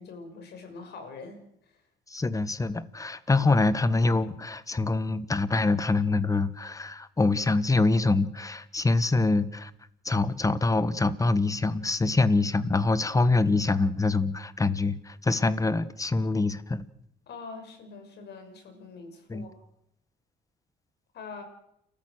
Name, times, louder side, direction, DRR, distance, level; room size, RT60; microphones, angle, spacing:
voice 1, 0.0-1.8 17.3-19.5 21.1-21.4, left 4 dB, 65° left, 6 dB, 6.0 m, -44 dB
voice 2, 2.1-9.7 10.0-16.8 19.3-19.4, left 3 dB, 20° left, 15 dB, 1.4 m, -25 dB
29.5 x 14.0 x 6.5 m, 0.76 s
cardioid pair, 90°, 19 cm